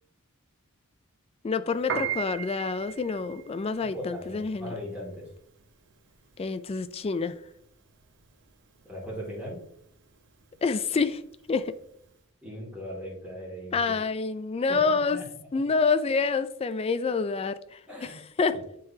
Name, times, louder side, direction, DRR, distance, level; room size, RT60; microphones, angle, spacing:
voice 1, 1.4-4.7 6.4-7.4 10.6-11.2 11.5-11.7 13.7-15.2 15.5-18.6, left 4 dB, 25° left, 0.3 m, -27 dB
Piano, 1.7-12.1, right 8 dB, 55° right, 0.8 m, -38 dB
voice 2, 3.9-5.3 8.8-9.6 12.4-14.0 14.7-15.3 17.9-18.2 18.5-18.6, equal, 5° right, 2.2 m, -38 dB
10.5 x 3.9 x 2.7 m
head